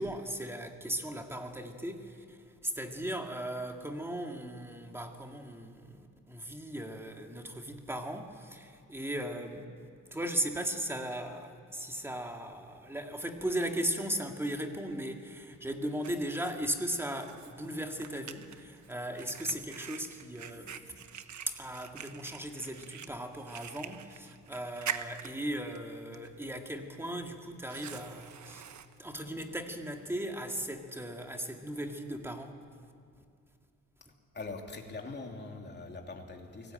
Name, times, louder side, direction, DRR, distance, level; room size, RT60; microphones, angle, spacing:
voice 1, 0.0-9.7 10.1-21.0 21.5-28.7 29.0-32.5, right 1 dB, 10° right, 3 dB, 2.0 m, -37 dB
Fire, 15.3-30.3, right 8 dB, 65° right, 1.1 m, -46 dB
voice 2, 34.3-36.7, left 3 dB, 35° left, 2 dB, 3.0 m, -42 dB
29.5 x 19.5 x 9.0 m, 2.2 s
wide cardioid pair, 160°, 32 cm